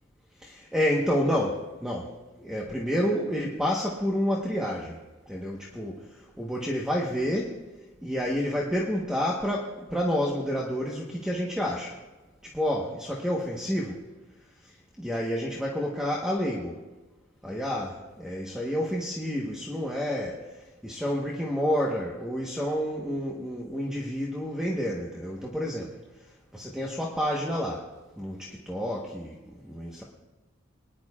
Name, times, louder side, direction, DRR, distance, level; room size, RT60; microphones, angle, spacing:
voice 1, 0.4-2.1 2.4-5.0 5.3-7.6 8.0-12.0 12.5-14.0 15.0-16.8 17.4-25.9 26.5-27.9 28.2-30.0, equal, 5° right, -3 dB, 1.2 m, -29 dB
22.5 x 10.5 x 2.4 m, 1.1 s
head